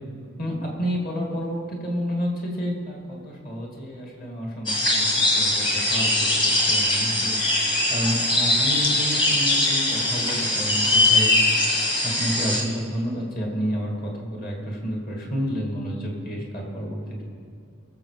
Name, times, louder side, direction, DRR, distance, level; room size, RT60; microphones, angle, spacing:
voice 1, 0.4-5.1 5.3-7.6 7.9-11.4 12.0-17.0, equal, 40° left, -1 dB, 2.5 m, -30 dB
sound 1, 4.7-12.6, left 1 dB, 20° left, 1.5 m, -21 dB
19.5 x 7.5 x 5.0 m, 2.5 s
head